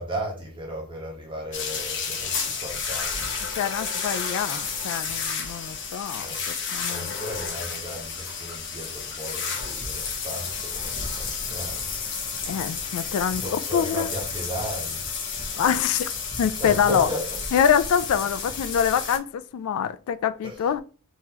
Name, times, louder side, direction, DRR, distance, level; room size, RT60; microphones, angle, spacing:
voice 1, 0.0-3.4 6.2-6.4 6.9-11.9 13.4-15.1 16.6-17.3 20.4-20.6, equal, 20° right, 1.2 m, -35 dB
sound 1, 1.5-19.2, left 5 dB, 55° left, 0.9 m, -31 dB
voice 2, 3.6-6.3 6.7-7.1 12.5-14.1 15.6-16.1 16.4-17.1 17.5-20.8, left 8 dB, 75° left, 0.3 m, -25 dB
3.7 x 2.9 x 2.9 m
head